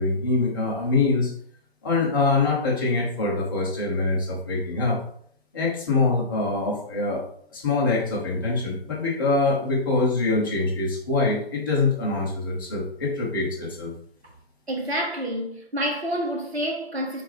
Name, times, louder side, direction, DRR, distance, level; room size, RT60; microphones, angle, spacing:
voice 1, 0.0-1.3 1.8-5.0 5.5-7.2 7.5-13.9, left 3 dB, 20° left, 0.9 m, -24 dB
voice 2, 14.7-17.2, equal, 85° right, 1.5 m, -28 dB
3.8 x 3.5 x 3.2 m
figure-of-eight pair, 150°, 31 cm